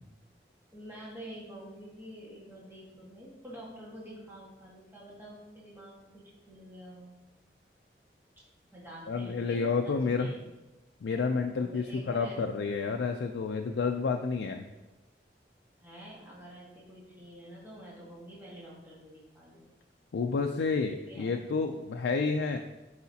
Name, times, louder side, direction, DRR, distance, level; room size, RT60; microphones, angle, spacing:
voice 1, 0.7-7.1 8.7-10.4 11.6-12.4 15.8-19.6 20.9-21.3, right 1 dB, 10° right, -6 dB, 1.5 m, -48 dB
voice 2, 9.1-10.3 11.0-14.7 20.1-22.6, left 4 dB, 90° left, 4 dB, 0.4 m, -30 dB
8.2 x 4.8 x 2.8 m, 1.0 s
head